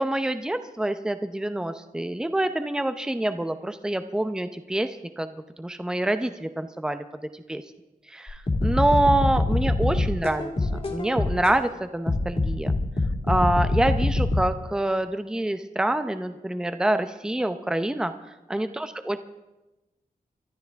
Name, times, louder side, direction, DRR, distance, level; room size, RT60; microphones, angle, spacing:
voice 1, 0.0-7.0 7.5-7.6 8.1-10.5 10.9-12.7 13.3-18.1 18.5-19.2, right 1 dB, 5° right, 9 dB, 0.6 m, -26 dB
sound 1, 8.3-11.5 12.1-14.4, left 2 dB, 40° left, 2.1 m, -24 dB
24.5 x 13.0 x 3.5 m, 1.0 s
wide cardioid pair, 175°, 15 cm